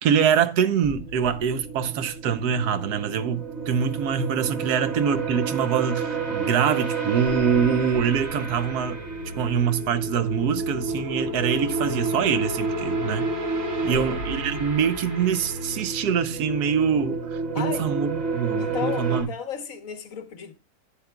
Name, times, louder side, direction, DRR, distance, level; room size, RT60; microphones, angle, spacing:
voice 1, 0.0-9.0 9.4-13.3 13.8-19.3, right 7 dB, 85° right, 1.3 m, -24 dB
sound 1, 0.8-19.2, right 3 dB, 60° right, 2.1 m, -30 dB
voice 2, 13.7-14.2 17.5-17.9 18.6-20.5, left 7 dB, 60° left, 1.4 m, -34 dB
11.5 x 8.7 x 2.3 m
omnidirectional pair, 1.6 m